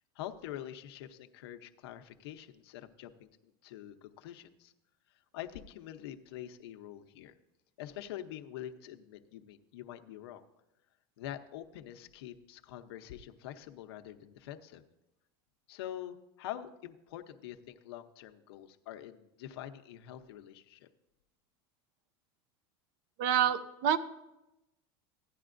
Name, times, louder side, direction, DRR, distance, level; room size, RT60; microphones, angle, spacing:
voice 1, 0.1-4.7 5.3-7.3 7.8-10.4 11.2-14.8 15.7-20.9, left 12 dB, 80° left, 7 dB, 0.7 m, -45 dB
voice 2, 23.2-24.0, right 9 dB, 60° right, 14 dB, 0.6 m, -27 dB
15.5 x 10.0 x 2.5 m, 0.93 s
supercardioid pair, 155°, 13 cm